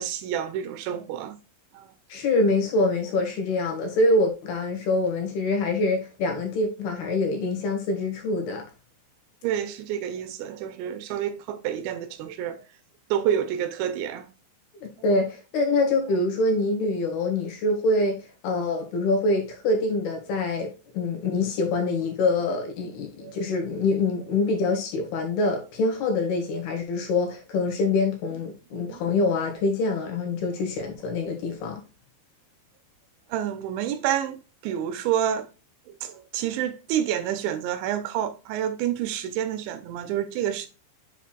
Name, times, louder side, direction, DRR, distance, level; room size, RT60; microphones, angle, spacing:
voice 1, 0.0-1.4 1.7-1.9 9.4-12.6 13.1-14.3 23.2-23.4 28.7-29.0 33.3-35.5 35.9-40.7, right 10 dB, 85° right, 2.8 m, -28 dB
voice 2, 2.1-8.6 14.7-18.2 18.4-31.8, left 2 dB, 65° left, 2.8 m, -25 dB
7.3 x 6.0 x 2.3 m
omnidirectional pair, 5.5 m